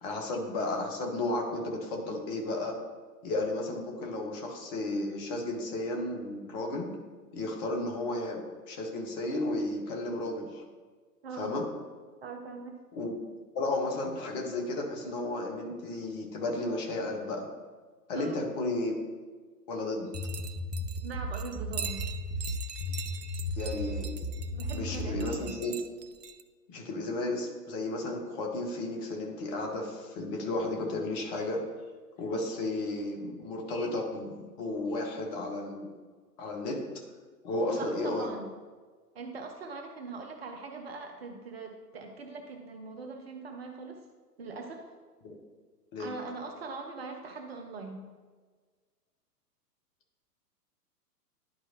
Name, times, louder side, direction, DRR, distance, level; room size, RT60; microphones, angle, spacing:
voice 1, 0.0-2.8 3.2-6.9 7.3-10.6 11.4-11.7 12.9-13.2 13.5-17.5 18.1-19.1 19.7-20.1 23.6-24.1 24.7-25.8 26.7-31.6 32.2-35.9 36.4-36.8 37.4-38.3 45.2-45.4 45.9-46.1, left 2 dB, 25° left, 1 dB, 1.0 m, -33 dB
voice 2, 12.2-12.8 18.2-18.4 21.0-22.0 24.5-25.5 37.7-38.5 39.1-44.0 44.4-44.9 46.0-48.1, right 4 dB, 40° right, 4 dB, 0.7 m, -41 dB
sound 1, 20.1-25.4, left 1 dB, 70° left, 1.3 m, -35 dB
sound 2, 20.1-26.4, right 7 dB, 75° right, 0.6 m, -42 dB
11.0 x 4.5 x 2.9 m, 1.5 s
figure-of-eight pair, 115°, 49 cm